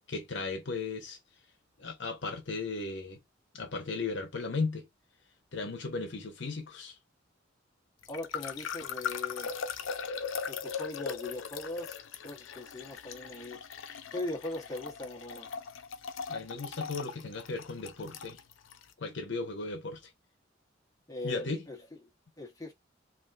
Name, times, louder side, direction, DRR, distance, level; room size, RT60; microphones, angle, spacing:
voice 1, 0.1-1.2 1.8-3.2 3.5-4.9 5.5-7.0 16.3-18.4 19.0-20.1 21.2-21.7, left 3 dB, 65° left, 0.8 m, -36 dB
sound 1, 8.0-18.8, left 6 dB, 85° left, 0.5 m, -39 dB
voice 2, 8.1-9.6 10.5-12.0 12.2-13.6 14.1-15.5 21.1-21.8 22.4-22.7, left 2 dB, 20° left, 1.0 m, -40 dB
3.5 x 2.5 x 2.4 m
head